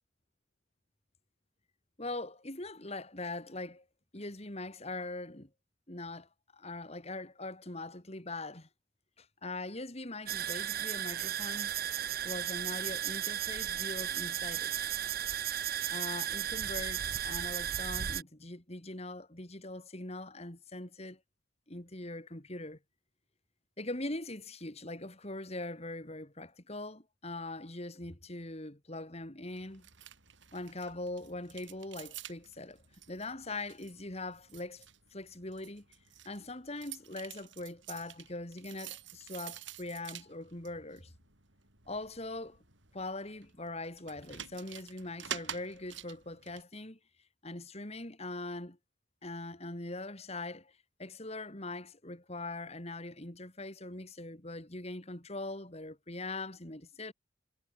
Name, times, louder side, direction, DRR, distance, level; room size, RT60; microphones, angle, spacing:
voice 1, 2.0-3.8 4.1-5.5 5.9-8.7 9.2-11.7 12.2-14.7 15.9-21.2 21.7-22.8 23.8-29.9 30.5-32.8 33.1-34.9 35.1-35.8 36.2-41.1 41.9-42.6 42.9-47.0 47.4-48.8 49.2-50.7 51.0-57.1, left 2 dB, 30° left, 3.0 m, -42 dB
sound 1, 10.3-18.2, right 10 dB, 45° right, 1.1 m, -35 dB
sound 2, 29.5-46.6, right 9 dB, 65° right, 7.4 m, -49 dB
head